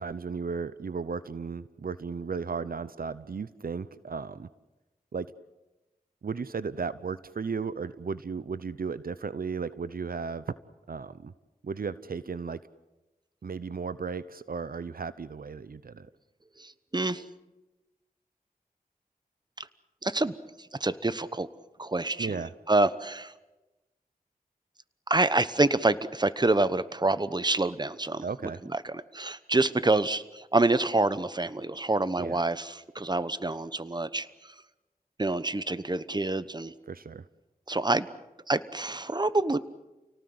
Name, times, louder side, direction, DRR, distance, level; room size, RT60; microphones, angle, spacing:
voice 1, 0.0-4.5 5.1-5.3 6.2-10.4 10.9-11.3 11.6-12.6 13.4-16.1 22.2-22.5 28.2-28.6 32.2-32.4 36.9-37.3, right 5 dB, 75° right, 15 dB, 0.7 m, -35 dB
voice 2, 16.6-17.2 19.6-19.7 20.0-20.3 20.8-21.5 21.8-23.3 25.1-28.2 28.6-34.5 35.2-36.7 37.7-38.1 38.5-39.6, right 2 dB, 30° right, 15 dB, 1.1 m, -27 dB
29.5 x 18.5 x 7.9 m, 1.1 s
cardioid pair, 45°, 15 cm